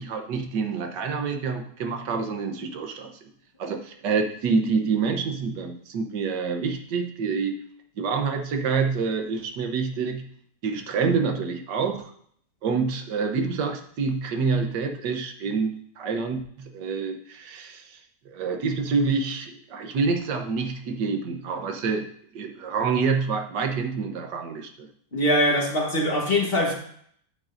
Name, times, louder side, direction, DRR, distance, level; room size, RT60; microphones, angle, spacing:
voice 1, 0.0-3.3 3.6-7.5 8.0-10.3 10.6-12.1 12.6-18.0 18.2-22.1 22.3-24.9, right 5 dB, 90° right, 4 dB, 1.6 m, -27 dB
voice 2, 25.1-26.7, left 1 dB, 35° left, -1 dB, 1.5 m, -22 dB
8.8 x 8.6 x 2.6 m, 0.63 s
omnidirectional pair, 1.8 m